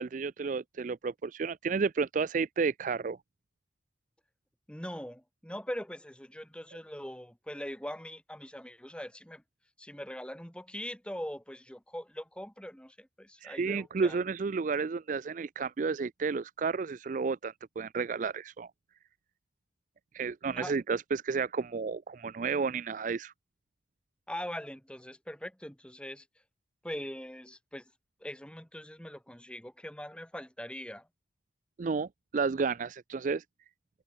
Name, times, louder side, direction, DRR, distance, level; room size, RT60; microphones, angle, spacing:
voice 1, 0.0-3.2 13.4-18.7 20.1-23.3 31.8-33.4, right 5 dB, 45° right, 0.4 m, -32 dB
voice 2, 4.7-9.4 9.8-14.2 20.6-20.8 24.3-26.3 26.8-27.8 28.2-31.1, equal, 5° left, 2.1 m, -42 dB
open air
head